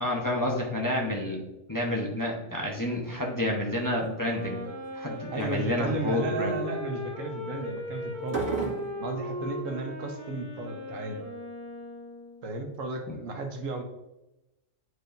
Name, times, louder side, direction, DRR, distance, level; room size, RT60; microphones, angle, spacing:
voice 1, 0.0-4.6 5.0-6.6 13.1-13.2, left 1 dB, 20° left, -1 dB, 0.8 m, -29 dB
sound 1, 2.8-3.1 3.5-4.0 4.6-5.0 5.4-5.6 8.2-9.1, right 5 dB, 55° right, 2.1 m, -33 dB
Wind instrument woodwind instrument, 4.1-12.5, left 1 dB, 35° right, 2.0 m, -38 dB
voice 2, 5.3-8.5 9.0-11.3 12.4-13.8, right 2 dB, 80° right, 4 dB, 1.3 m, -34 dB
9.2 x 4.7 x 2.6 m, 0.96 s
omnidirectional pair, 1.4 m